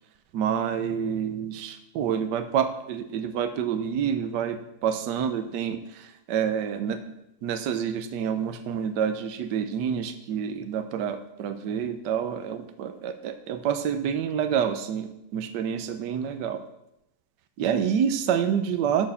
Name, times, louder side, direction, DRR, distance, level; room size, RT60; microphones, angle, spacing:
voice 1, 0.3-7.0 7.4-16.6 17.6-19.1, right 8 dB, 80° right, 9 dB, 1.4 m, -28 dB
12.5 x 4.5 x 7.0 m, 0.84 s
omnidirectional pair, 1.8 m